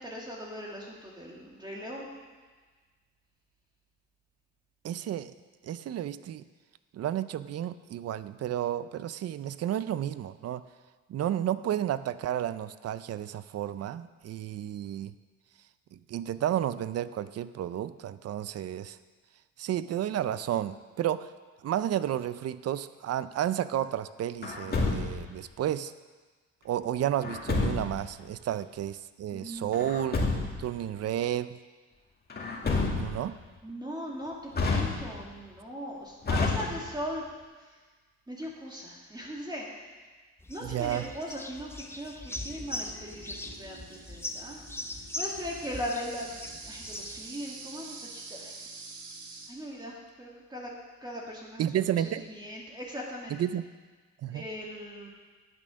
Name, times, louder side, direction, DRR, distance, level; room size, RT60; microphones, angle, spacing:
voice 1, 0.0-2.1 29.3-29.9 33.6-37.3 37.6-37.8 38.3-39.7 40.5-44.6 45.1-48.7 49.5-50.7 51.0-51.7 52.3-53.3 54.3-55.1, equal, 15° right, -3 dB, 2.1 m, -39 dB
voice 2, 4.8-5.3 5.6-6.4 6.9-10.6 11.1-15.1 15.9-19.0 19.6-21.3 21.6-25.9 26.6-31.6 32.9-33.4 40.6-41.1 51.6-52.2 53.3-53.6 54.2-54.4, right 11 dB, 55° right, 15 dB, 0.6 m, -32 dB
Truck, 24.4-25.4 27.2-28.1 29.7-30.7 32.3-33.3 34.5-35.4 36.2-37.1, left 3 dB, 30° left, 2.2 m, -29 dB
sound 1, 40.4-47.3, left 2 dB, 10° left, 0.8 m, -40 dB
sound 2, 42.3-49.5, right 4 dB, 70° right, 1.9 m, -46 dB
9.2 x 8.8 x 6.3 m, 1.4 s
cardioid pair, 90°, 30 cm